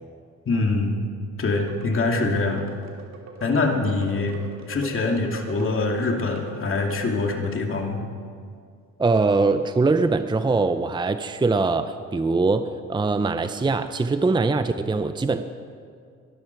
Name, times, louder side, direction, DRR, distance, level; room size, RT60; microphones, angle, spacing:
voice 1, 0.5-1.0 1.4-2.7 3.4-4.3 4.7-8.0, left 3 dB, 45° left, 1 dB, 2.7 m, -24 dB
sound 1, 1.5-7.6, right 3 dB, 65° right, 2.9 m, -43 dB
voice 2, 9.0-15.4, right 3 dB, 15° right, 10 dB, 0.6 m, -22 dB
22.5 x 12.5 x 4.7 m, 2.2 s
cardioid pair, 90°, 30 cm